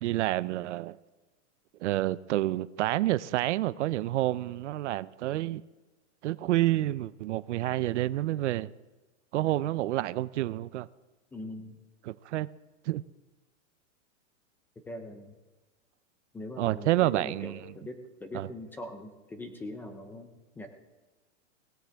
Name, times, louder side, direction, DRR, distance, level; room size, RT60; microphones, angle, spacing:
voice 1, 0.0-1.0 1.8-5.6 6.2-8.7 9.3-10.9 12.0-12.5 12.9-13.0 16.6-17.6 18.3-18.5, right 15 dB, 70° right, 0.6 m, -29 dB
voice 2, 11.3-11.8 14.9-15.4 16.3-20.7, left 1 dB, 5° left, 0.4 m, -41 dB
17.0 x 17.0 x 3.4 m
supercardioid pair, 155°, 37 cm